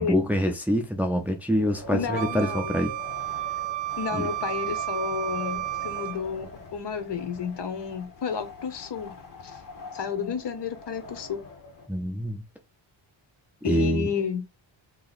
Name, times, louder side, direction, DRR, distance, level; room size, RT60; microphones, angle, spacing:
voice 1, 0.0-2.9 4.1-4.3 11.9-12.4 13.6-14.1, equal, 5° right, 0.6 m, -25 dB
Wind, 1.5-11.9, left 2 dB, 45° left, 1.2 m, -43 dB
voice 2, 1.9-2.8 4.0-9.2 9.4-9.6 9.9-11.4 13.6-14.4, left 6 dB, 60° left, 0.9 m, -31 dB
Wind instrument woodwind instrument, 2.2-6.2, right 17 dB, 65° right, 0.6 m, -32 dB
3.0 x 2.9 x 3.9 m
wide cardioid pair, 150°, 47 cm